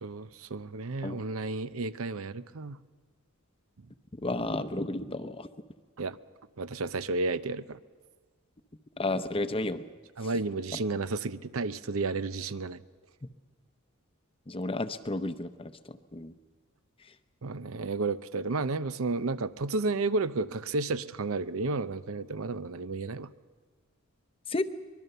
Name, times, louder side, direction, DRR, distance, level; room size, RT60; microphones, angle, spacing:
voice 1, 0.0-2.8 6.0-6.2 6.6-7.8 10.2-12.8 17.4-23.3, right 3 dB, 80° right, 14 dB, 0.7 m, -32 dB
voice 2, 4.2-5.5 9.0-9.8 14.5-16.3 24.5-24.7, left 2 dB, 25° left, 11 dB, 0.8 m, -32 dB
23.5 x 21.5 x 6.8 m, 1.5 s
head